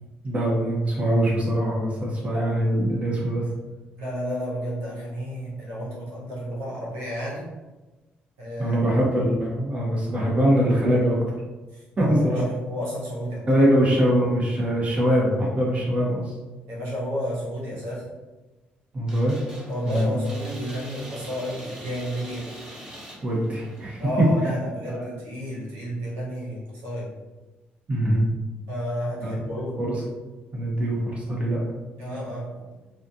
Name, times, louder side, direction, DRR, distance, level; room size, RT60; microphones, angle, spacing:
voice 1, 0.2-3.5 8.6-11.2 12.0-12.4 13.5-16.3 18.9-19.4 19.8-20.1 23.2-24.3 24.9-25.1 27.9-28.2 29.2-29.3 29.8-30.0 30.5-31.6, right 1 dB, 35° right, -4 dB, 1.3 m, -22 dB
voice 2, 4.0-7.4 8.4-8.8 11.7-13.4 16.7-18.0 19.7-22.5 24.0-27.1 28.7-29.8 32.0-32.7, equal, 90° right, -5 dB, 1.3 m, -31 dB
sound 1, 19.1-24.1, equal, 20° right, 1.2 m, -42 dB
4.2 x 2.5 x 2.9 m, 1.2 s
cardioid pair, 75°, 4 cm